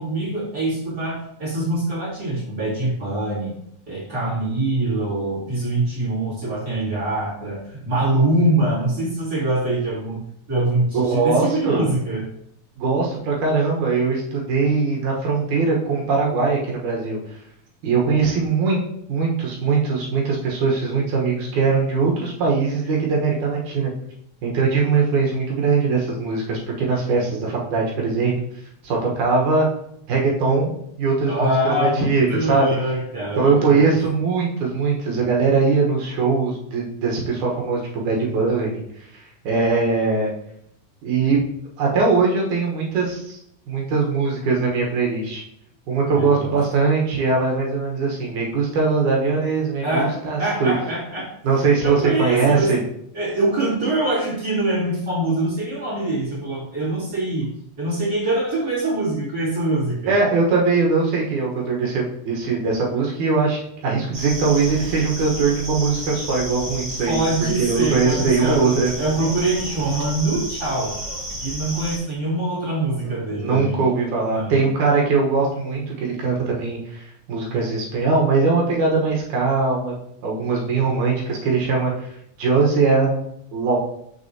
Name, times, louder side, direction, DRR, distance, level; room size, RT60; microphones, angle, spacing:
voice 1, 0.0-3.5 3.9-10.2 10.5-12.2 31.3-34.0 46.1-46.6 49.8-51.3 51.8-52.7 53.1-57.5 57.8-60.2 67.1-68.6 69.0-71.0 71.4-73.8 74.3-74.6, right 2 dB, 35° right, -7 dB, 2.8 m, -24 dB
voice 2, 10.9-11.9 12.8-17.2 17.8-18.8 19.1-23.9 24.4-28.3 28.8-29.7 30.1-32.7 33.4-38.8 39.4-40.3 41.0-41.4 41.8-43.4 43.7-45.4 45.9-50.7 51.4-52.8 60.1-63.6 63.8-68.9 73.0-79.9 80.2-82.1 82.4-83.2 83.5-83.8, right 4 dB, 85° right, -2 dB, 2.8 m, -21 dB
sound 1, 64.1-72.0, right 1 dB, 50° right, 3.2 m, -31 dB
6.7 x 6.4 x 2.9 m, 0.73 s
omnidirectional pair, 3.4 m